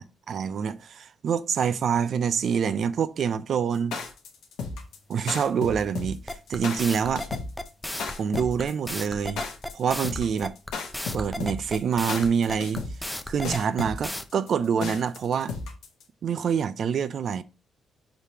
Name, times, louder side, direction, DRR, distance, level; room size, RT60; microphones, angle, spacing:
voice 1, 0.0-4.0 5.1-7.3 8.2-9.4 9.7-10.5 11.1-12.8 13.3-15.6 16.2-17.4, right 7 dB, 60° right, 0.3 m, -26 dB
sound 1, 3.7-16.0, left 4 dB, 85° left, 0.9 m, -34 dB
sound 2, 6.3-14.2, left 1 dB, 5° left, 0.4 m, -34 dB
4.8 x 3.3 x 2.8 m
cardioid pair, 90°, 0 cm